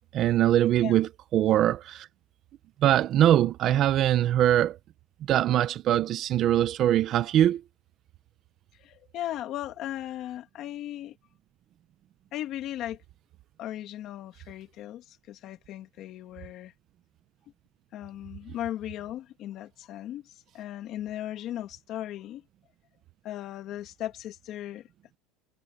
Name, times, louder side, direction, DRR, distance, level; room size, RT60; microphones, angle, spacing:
voice 1, 0.1-2.1 2.8-4.8 5.3-7.6, right 12 dB, 30° right, 0.6 m, -22 dB
voice 2, 8.8-11.2 12.3-13.0 13.6-16.7 17.9-22.4 23.2-24.9, left 12 dB, 35° left, 2.2 m, -37 dB
cardioid pair, 175°, 0 cm